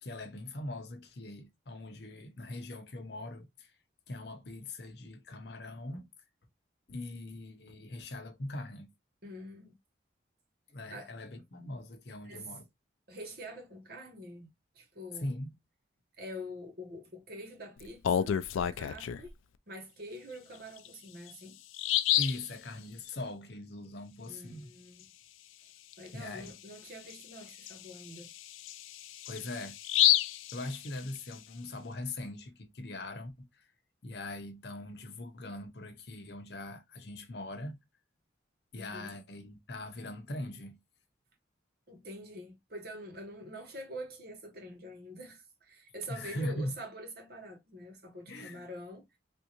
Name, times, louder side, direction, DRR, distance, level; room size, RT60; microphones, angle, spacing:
voice 1, 0.0-3.8 4.1-6.1 6.9-8.9 10.7-12.7 15.2-15.5 22.2-24.7 26.1-26.5 29.3-30.1 30.5-33.7 34.0-37.8 38.7-40.8 46.1-46.7 48.3-48.7, left 1 dB, 55° left, 0.7 m, -41 dB
voice 2, 9.2-9.7 10.9-11.4 12.2-12.5 13.1-15.3 16.2-19.3 19.7-21.6 24.3-25.0 26.0-28.3 38.8-39.1 41.9-49.2, equal, 50° right, 1.2 m, -46 dB
Bird vocalization bird call bird song, 17.8-19.3 20.8-20.9 21.3-21.4 21.7-22.5 25.9-26.1 26.5-26.6 27.1-31.3, left 12 dB, 90° left, 0.3 m, -30 dB
3.4 x 2.6 x 2.8 m
head